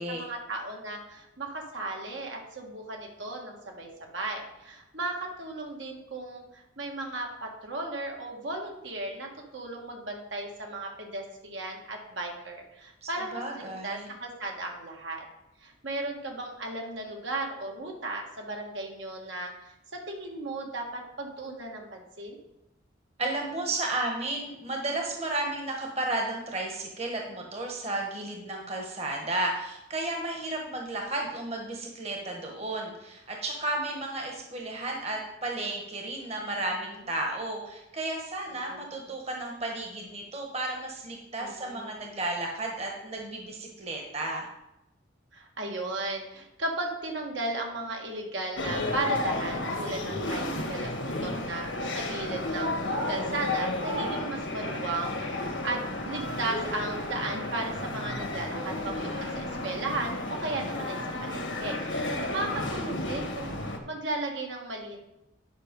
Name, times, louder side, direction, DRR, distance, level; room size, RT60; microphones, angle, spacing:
voice 1, 0.0-15.2 15.6-19.7 20.1-22.4 36.6-36.7 38.5-39.0 41.4-41.9 45.3-65.0, right 2 dB, 70° right, 1 dB, 1.7 m, -36 dB
voice 2, 13.0-14.1 23.2-44.5 58.5-59.3, right 2 dB, 35° right, 1 dB, 1.3 m, -33 dB
sound 1, 48.6-63.8, left 2 dB, 75° left, 1.5 m, -32 dB
10.0 x 5.5 x 5.2 m, 0.90 s
head